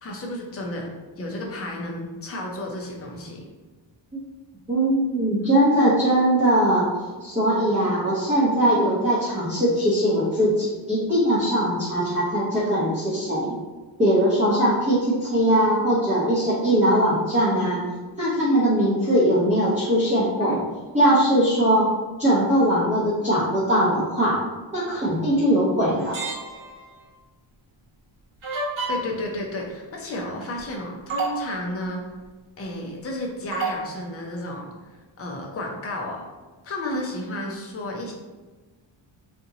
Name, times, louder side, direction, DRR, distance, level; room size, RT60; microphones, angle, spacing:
voice 1, 0.0-3.4 20.4-20.6 28.9-32.0 32.6-34.7 35.2-36.3 36.6-38.1, left 1 dB, 30° left, 0 dB, 0.6 m, -32 dB
voice 2, 4.7-6.8 7.2-13.6 14.0-17.8 18.2-20.6 20.9-21.9 22.2-24.4 24.7-26.2, equal, 15° right, -10 dB, 0.7 m, -21 dB
sound 1, 26.0-26.9 28.4-29.2 30.6-30.7 31.1-31.5 33.5-33.9, right 3 dB, 80° right, 0.9 m, -29 dB
2.8 x 2.5 x 3.8 m, 1.3 s
wide cardioid pair, 150°, 47 cm